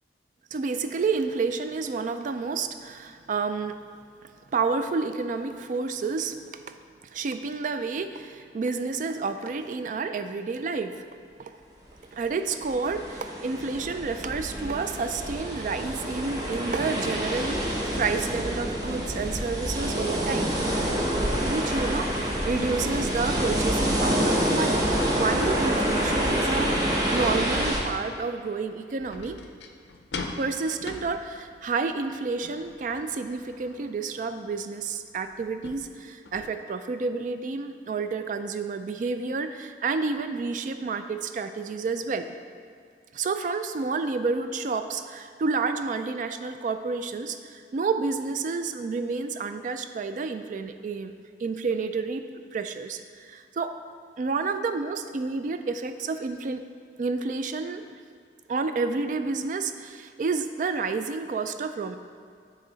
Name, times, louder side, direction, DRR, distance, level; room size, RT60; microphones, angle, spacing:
voice 1, 0.5-3.8 4.5-6.7 7.0-11.0 11.4-11.5 12.1-20.5 21.5-24.8 25.1-29.4 30.4-42.3 43.1-51.1 51.4-52.3 52.5-53.7 54.2-56.6 57.0-57.8 58.5-62.0, right 4 dB, 45° right, 9 dB, 0.3 m, -30 dB
sound 1, 12.4-27.8, equal, 20° right, 0.8 m, -27 dB
sound 2, 29.0-36.5, left 3 dB, 70° left, 0.5 m, -42 dB
9.5 x 3.2 x 3.9 m, 2.3 s
head